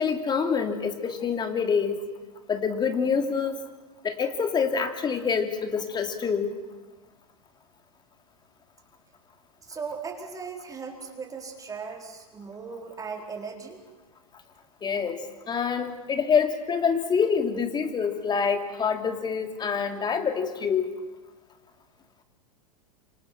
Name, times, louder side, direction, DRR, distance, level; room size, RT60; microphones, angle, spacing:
voice 1, 0.0-2.0 2.5-3.6 4.0-6.5 14.8-20.9, left 6 dB, 20° left, 6 dB, 2.9 m, -26 dB
voice 2, 9.6-13.8, right 5 dB, 15° right, 2 dB, 4.5 m, -38 dB
27.5 x 25.5 x 6.1 m, 1.2 s
hypercardioid pair, 110°, 20 cm